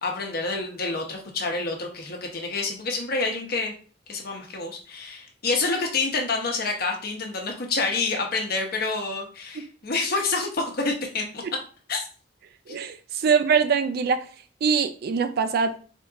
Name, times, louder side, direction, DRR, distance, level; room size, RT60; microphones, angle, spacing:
voice 1, 0.0-3.7 4.1-11.4 11.9-12.1 12.7-12.8, left 3 dB, 55° left, 0.9 m, -28 dB
voice 2, 12.7-14.2 14.6-15.8, right 6 dB, 55° right, 0.4 m, -23 dB
3.6 x 2.4 x 3.8 m
head